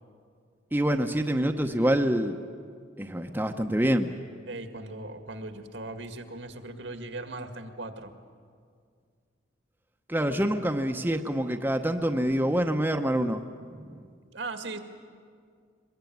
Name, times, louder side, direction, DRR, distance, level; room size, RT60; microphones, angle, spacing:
voice 1, 0.7-2.4 3.0-4.1 10.1-13.4 13.9-14.0, right 1 dB, 10° right, 4 dB, 0.8 m, -26 dB
voice 2, 4.5-8.1 14.3-14.8, right 2 dB, 80° right, 7 dB, 2.0 m, -38 dB
22.5 x 22.0 x 9.4 m, 2.1 s
head